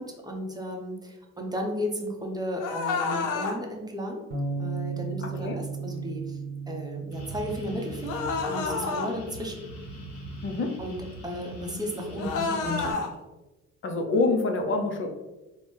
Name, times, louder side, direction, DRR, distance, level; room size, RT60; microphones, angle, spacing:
voice 1, 0.0-4.2 4.6-6.4 6.7-9.5 10.8-11.0 11.2-13.0, equal, 15° right, 1 dB, 0.7 m, -34 dB
sound 1, 2.6-3.6 8.0-9.1 12.2-13.1, left 4 dB, 90° left, 0.6 m, -29 dB
sound 2, 4.3-10.6, right 5 dB, 90° right, 0.8 m, -36 dB
voice 2, 5.2-5.6 10.4-10.8 13.8-15.1, left 3 dB, 40° left, 4 dB, 0.5 m, -26 dB
sound 3, 7.1-12.9, left 1 dB, 60° left, 1.2 m, -43 dB
3.8 x 2.1 x 3.2 m, 1.1 s
cardioid pair, 90°, 30 cm